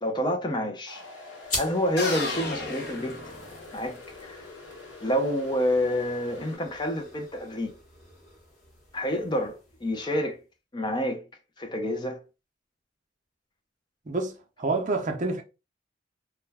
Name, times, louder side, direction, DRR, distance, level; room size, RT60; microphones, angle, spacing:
voice 1, 0.0-1.0 1.6-3.3 3.7-4.5 5.0-7.8 8.9-10.4 10.7-11.2 11.6-12.2, equal, 25° left, 0.5 m, -28 dB
sound 1, 0.9-6.6, left 3 dB, 85° left, 1.0 m, -45 dB
sound 2, 1.4-10.4, left 2 dB, 40° left, 1.1 m, -42 dB
sound 3, 2.0-3.9, left 2 dB, 60° left, 0.9 m, -33 dB
voice 2, 14.1-15.4, right 3 dB, 45° right, 0.6 m, -28 dB
2.3 x 2.2 x 3.2 m
head